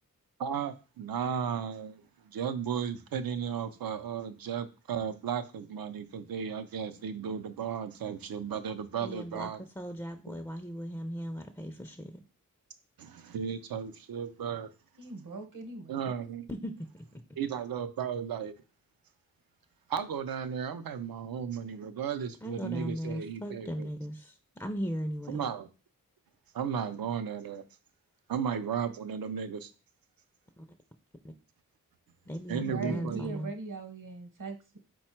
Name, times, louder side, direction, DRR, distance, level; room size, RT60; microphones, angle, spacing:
voice 1, 0.4-9.6 13.0-14.7 15.9-16.5 17.4-18.5 19.9-23.9 25.3-25.7 26.5-27.6 28.3-29.7 32.5-33.4, right 7 dB, 75° right, 0.5 m, -35 dB
voice 2, 9.0-12.2 16.5-17.2 22.4-25.5 30.6-30.7 31.2-31.3 32.3-33.5, equal, 10° left, 0.4 m, -38 dB
voice 3, 15.0-16.1 32.6-34.8, right 3 dB, 60° right, 1.0 m, -40 dB
4.2 x 2.2 x 4.3 m
cardioid pair, 45°, 35 cm